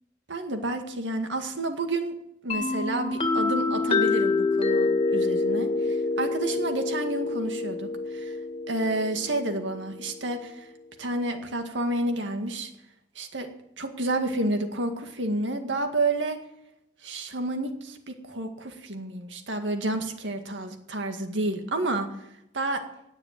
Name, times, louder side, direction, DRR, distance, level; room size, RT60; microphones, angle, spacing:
voice 1, 0.3-2.1 2.4-8.4 8.7-10.7 11.0-12.7 13.2-13.5 13.8-16.4 17.0-22.1 22.5-22.8, right 2 dB, 80° right, 6 dB, 2.0 m, -30 dB
sound 1, 2.5-10.1, left 3 dB, 30° left, 2.1 m, -27 dB
18.0 x 6.7 x 9.1 m, 0.83 s
head